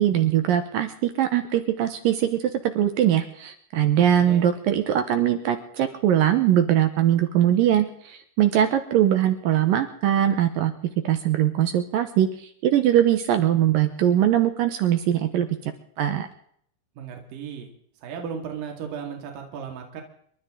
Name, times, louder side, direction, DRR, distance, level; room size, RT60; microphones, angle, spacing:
voice 1, 0.0-10.7 11.0-15.5 16.0-16.3, right 11 dB, 75° right, 8 dB, 2.1 m, -21 dB
voice 2, 17.0-17.7 18.0-20.0, right 7 dB, 55° right, 2 dB, 3.5 m, -35 dB
29.0 x 12.5 x 3.8 m, 0.65 s
omnidirectional pair, 5.0 m